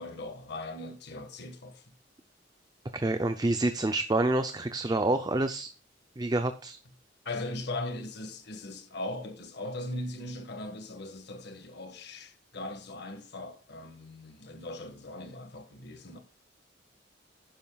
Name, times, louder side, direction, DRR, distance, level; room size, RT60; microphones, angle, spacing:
voice 1, 0.0-1.8 7.2-16.2, left 2 dB, 65° left, 1.7 m, -39 dB
voice 2, 2.9-5.7 6.2-6.8, right 2 dB, 20° right, 0.6 m, -27 dB
11.0 x 10.0 x 2.4 m
head